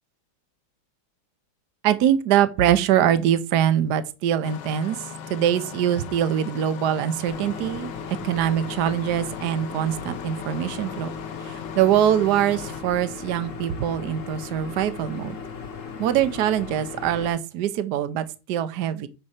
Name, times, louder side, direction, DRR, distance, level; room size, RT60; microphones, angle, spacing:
voice 1, 1.8-11.1 11.4-15.4 16.0-19.1, right 10 dB, 60° right, 1.2 m, -23 dB
Engine starting, 4.4-12.8, left 8 dB, 65° left, 1.3 m, -38 dB
sound 1, 7.3-17.3, left 5 dB, 45° left, 1.3 m, -37 dB
9.9 x 4.2 x 6.5 m
omnidirectional pair, 2.4 m